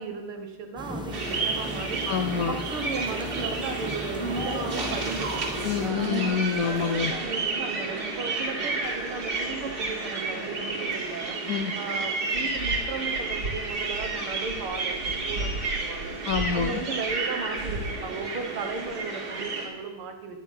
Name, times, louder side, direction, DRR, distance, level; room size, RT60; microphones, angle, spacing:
voice 1, 0.0-2.1 2.4-6.1 6.7-11.4 11.8-16.1 16.5-20.4, right 4 dB, 80° right, 4 dB, 2.2 m, -36 dB
sound 1, 0.8-5.9, left 1 dB, 5° right, 0.5 m, -37 dB
sound 2, 1.1-19.7, right 3 dB, 55° right, 3.1 m, -31 dB
voice 2, 2.1-2.6 5.6-7.1 11.5-11.7 16.2-16.8, left 7 dB, 85° left, 7 dB, 0.7 m, -27 dB
sound 3, 4.2-12.5 12.7-12.8, right 1 dB, 40° right, 2.1 m, -40 dB
10.5 x 10.5 x 5.8 m, 1.1 s
omnidirectional pair, 2.4 m